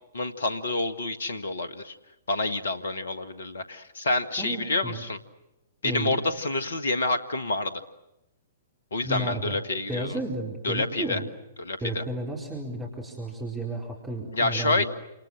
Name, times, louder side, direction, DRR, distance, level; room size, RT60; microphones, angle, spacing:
voice 1, 0.1-1.9 2.3-5.2 5.8-7.8 8.9-10.1 10.6-11.2 11.6-12.0 14.3-14.8, left 2 dB, 65° left, 13 dB, 1.8 m, -28 dB
voice 2, 4.4-5.0 5.8-6.2 9.0-9.6 9.9-11.3 11.8-14.9, right 1 dB, 10° right, 0 dB, 4.7 m, -33 dB
28.5 x 27.5 x 7.4 m, 0.93 s
figure-of-eight pair, 115°, 0 cm